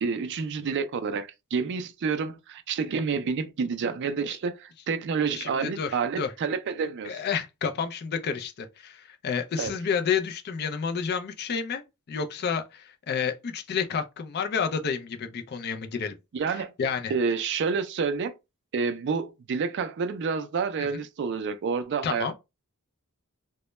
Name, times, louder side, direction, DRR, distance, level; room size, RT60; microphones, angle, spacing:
voice 1, 0.0-7.2 9.6-9.7 16.3-16.7 17.1-18.3 18.7-22.3, right 5 dB, 55° right, 0.3 m, -29 dB
voice 2, 5.4-6.3 7.0-11.8 12.1-16.1 16.5-17.1 20.8-21.0 22.0-22.3, left 6 dB, 45° left, 0.4 m, -30 dB
2.2 x 2.0 x 2.9 m
head